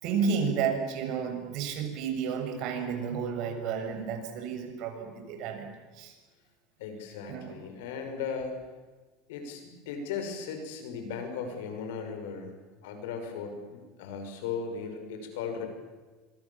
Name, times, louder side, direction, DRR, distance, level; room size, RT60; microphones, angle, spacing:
voice 1, 0.0-5.7 5.9-6.1 7.3-7.6, right 6 dB, 60° right, 5 dB, 6.7 m, -31 dB
voice 2, 6.8-8.5 9.3-12.5 12.8-15.7, left 6 dB, 85° left, 6 dB, 6.4 m, -37 dB
26.0 x 23.5 x 7.4 m, 1.3 s
supercardioid pair, 120°, 0 cm